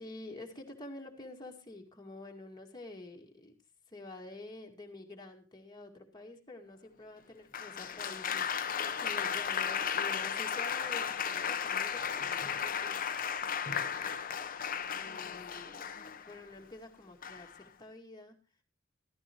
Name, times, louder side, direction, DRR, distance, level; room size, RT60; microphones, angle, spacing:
voice 1, 0.0-3.5 3.9-13.0 13.4-14.2 14.6-18.4, left 2 dB, 20° left, 1 dB, 2.1 m, -48 dB
Applause, 7.5-16.4 17.2-17.6, left 7 dB, 45° left, 0.9 m, -35 dB
14.5 x 13.0 x 3.0 m, 0.34 s
head